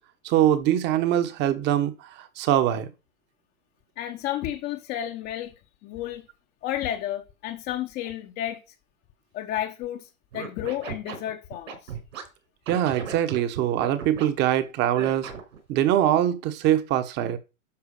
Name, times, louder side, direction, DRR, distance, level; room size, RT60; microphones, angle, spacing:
voice 1, 0.2-2.9 12.7-15.3 15.7-17.4, right 11 dB, 25° right, 1.2 m, -23 dB
voice 2, 4.0-5.5 5.8-6.3 6.6-8.6 9.3-11.9, left 12 dB, 25° left, 0.9 m, -32 dB
Scratching (performance technique), 10.3-12.2 12.7-14.3 14.9-15.6, right 7 dB, 70° right, 5.3 m, -36 dB
11.5 x 4.8 x 6.5 m
hypercardioid pair, 145°, 41 cm